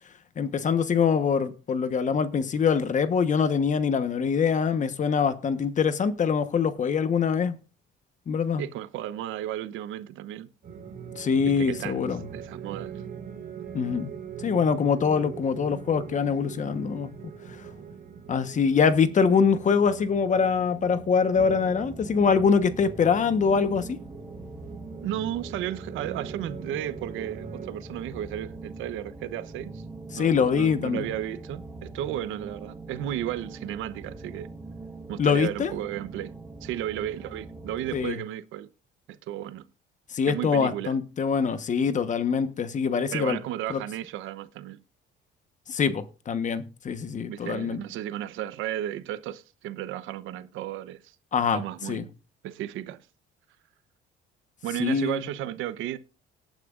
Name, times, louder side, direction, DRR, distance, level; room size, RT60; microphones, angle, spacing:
voice 1, 0.4-7.6 8.3-8.6 11.2-12.3 13.7-14.1 14.4-17.1 18.3-24.0 30.1-31.1 35.2-35.7 37.9-38.2 40.1-43.4 43.7-43.8 45.7-47.8 51.3-52.0 54.8-55.2, left 6 dB, 40° left, 1.2 m, -24 dB
voice 2, 8.6-10.5 11.6-12.9 25.0-29.8 30.1-34.5 35.1-36.3 36.6-38.7 39.1-39.7 40.3-41.0 43.1-44.8 47.3-51.1 51.5-52.1 52.4-53.0 54.6-56.0, right 12 dB, 80° right, 0.9 m, -34 dB
sound 1, 10.6-27.7, right 7 dB, 45° right, 4.1 m, -42 dB
sound 2, 21.3-38.1, right 2 dB, 10° right, 1.4 m, -42 dB
18.5 x 9.2 x 2.5 m
cardioid pair, 120°, 20 cm